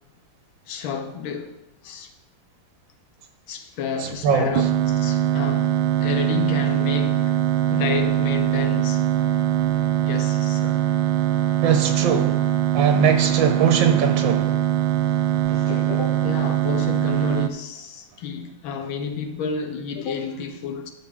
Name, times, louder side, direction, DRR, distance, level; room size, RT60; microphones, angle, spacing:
voice 1, 0.7-1.6 1.8-2.1 3.5-7.3 7.7-9.0 10.0-10.9 15.5-20.9, left 6 dB, 85° left, 1.7 m, -31 dB
voice 2, 4.0-4.6 11.6-12.5 12.7-14.6 15.5-15.6, right 7 dB, 70° right, 1.6 m, -21 dB
sound 1, 4.6-17.5, right 12 dB, 90° right, 1.4 m, -22 dB
11.5 x 6.8 x 3.6 m
omnidirectional pair, 2.2 m